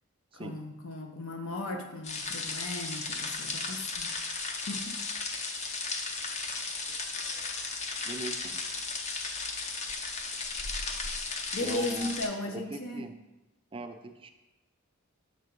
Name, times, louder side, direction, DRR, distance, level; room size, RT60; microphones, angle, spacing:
voice 1, 0.3-4.1 4.7-4.8 11.5-13.0, left 2 dB, 70° left, 3 dB, 0.7 m, -36 dB
sound 1, 2.0-12.3, left 4 dB, 35° left, 0.5 m, -35 dB
voice 2, 8.0-8.5 11.6-12.1 12.5-13.1 13.7-14.3, right 2 dB, 25° right, 6 dB, 0.4 m, -40 dB
6.7 x 3.4 x 5.2 m, 1.1 s
head